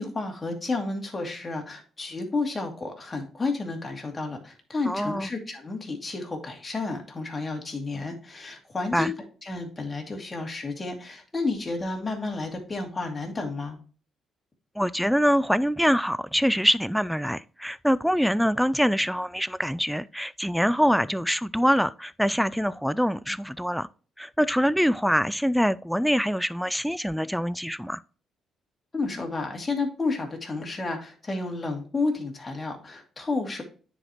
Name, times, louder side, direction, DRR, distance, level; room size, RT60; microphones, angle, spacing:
voice 1, 0.0-9.1 9.4-13.8 28.9-33.6, left 3 dB, 25° left, 2.4 m, -31 dB
voice 2, 4.9-5.3 8.9-9.1 14.8-23.9 24.2-28.0, equal, ahead, 0.3 m, -24 dB
9.7 x 4.9 x 3.0 m
cardioid pair, 90°, 0 cm